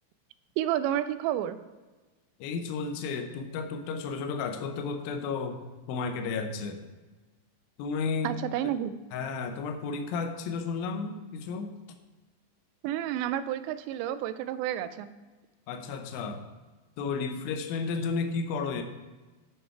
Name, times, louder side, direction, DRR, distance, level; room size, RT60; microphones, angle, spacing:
voice 1, 0.6-1.6 8.2-8.9 12.8-15.1, right 11 dB, 85° right, 13 dB, 2.7 m, -30 dB
voice 2, 2.4-5.6 5.9-6.8 7.8-8.4 9.1-11.8 15.7-16.5 17.0-18.8, left 4 dB, 80° left, 6 dB, 2.2 m, -32 dB
9.9 x 5.5 x 4.6 m, 1.2 s
omnidirectional pair, 5.1 m